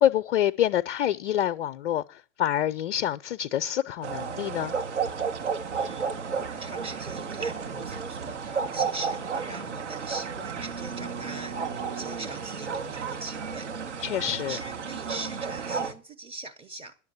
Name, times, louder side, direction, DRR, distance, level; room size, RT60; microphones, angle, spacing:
voice 1, 0.0-4.7 14.0-14.6, left 11 dB, 55° left, 0.6 m, -26 dB
sound 1, 4.0-15.9, right 5 dB, 70° right, 1.5 m, -32 dB
voice 2, 5.8-6.1 6.6-8.4 8.7-13.7 14.4-17.0, right 2 dB, 15° right, 0.8 m, -40 dB
10.5 x 7.2 x 8.0 m
figure-of-eight pair, 100°, 37 cm